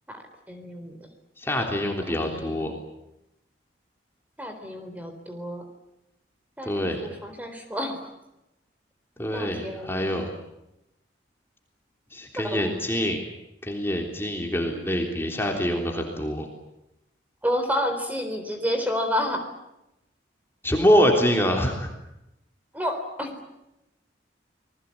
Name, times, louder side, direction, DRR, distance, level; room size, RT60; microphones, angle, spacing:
voice 1, 0.5-1.0 2.0-2.8 4.4-5.6 6.6-8.1 9.3-10.1 12.4-12.8 17.4-19.4 22.7-23.3, equal, 10° right, 6 dB, 3.9 m, -30 dB
voice 2, 1.4-2.7 6.7-7.0 9.2-10.3 12.1-13.2 13.6-16.5 20.6-21.9, equal, 15° left, 1 dB, 3.5 m, -25 dB
28.5 x 20.5 x 8.5 m, 0.88 s
head